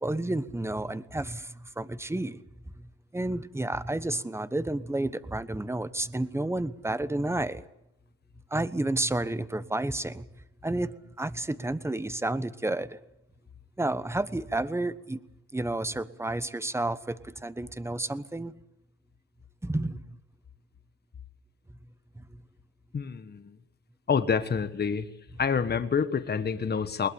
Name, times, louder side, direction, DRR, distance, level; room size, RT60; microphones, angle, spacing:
voice 1, 0.0-2.4 2.8-7.6 8.5-10.3 10.6-13.0 13.8-15.2 15.5-18.5 19.6-20.2 22.2-22.3, right 2 dB, 10° right, 1.2 m, -31 dB
voice 2, 22.9-23.6 24.1-25.1 25.4-27.1, left 6 dB, 35° left, 1.4 m, -27 dB
21.0 x 20.5 x 8.6 m
cardioid pair, 90°, 30 cm